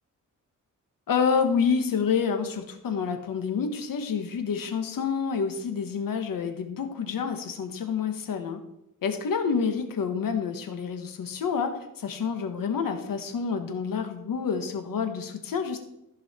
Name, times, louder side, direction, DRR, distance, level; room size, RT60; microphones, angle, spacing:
voice 1, 1.1-8.6 9.0-15.8, left 6 dB, 80° left, 7 dB, 1.4 m, -28 dB
14.5 x 5.7 x 4.3 m, 0.83 s
wide cardioid pair, 130°, 34 cm